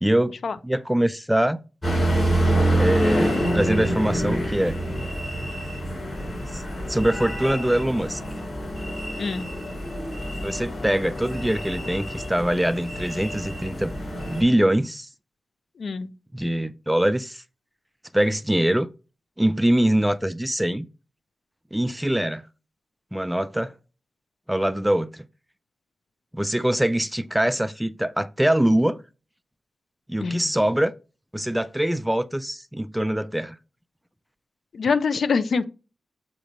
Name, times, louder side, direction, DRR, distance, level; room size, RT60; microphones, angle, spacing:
voice 1, 0.0-0.4 0.6-1.6 2.8-4.7 6.5-6.6 6.9-8.2 10.4-13.9 14.3-15.1 16.3-17.4 18.1-18.9 19.4-20.9 21.7-22.4 23.1-23.7 24.5-25.3 26.3-29.0 30.1-30.9 31.3-33.6, right 1 dB, 5° right, 0.3 m, -23 dB
sound 1, 1.8-14.4, right 1 dB, 25° left, 4.3 m, -26 dB
voice 2, 15.8-16.1 30.2-30.5 34.7-35.6, left 5 dB, 65° left, 0.6 m, -24 dB
7.6 x 3.0 x 5.1 m
wide cardioid pair, 95°, 0 cm